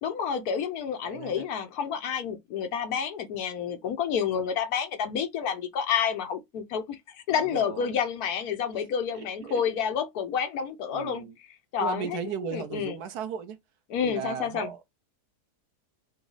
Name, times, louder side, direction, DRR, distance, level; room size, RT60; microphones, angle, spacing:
voice 1, 0.0-7.0 7.3-11.3 11.7-13.0 13.9-14.7, left 7 dB, 70° left, 1.1 m, -29 dB
voice 2, 1.0-1.5 7.3-8.0 9.1-9.6 10.9-11.4 11.8-13.6 14.0-14.8, right 8 dB, 70° right, 1.2 m, -36 dB
4.1 x 2.3 x 3.8 m
omnidirectional pair, 1.8 m